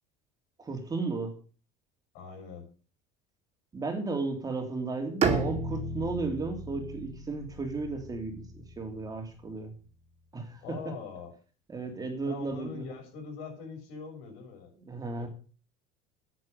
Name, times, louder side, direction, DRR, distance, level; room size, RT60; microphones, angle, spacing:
voice 1, 0.6-1.4 3.7-9.7 10.3-10.9 11.7-12.8 14.8-15.3, right 3 dB, 20° right, 3.1 m, -34 dB
voice 2, 2.1-2.7 10.6-11.3 12.3-14.7 15.2-15.3, left 5 dB, 80° left, 7.5 m, -42 dB
Bowed string instrument, 5.2-9.1, right 4 dB, 35° right, 2.6 m, -33 dB
11.0 x 9.7 x 6.6 m
supercardioid pair, 120°, 18 cm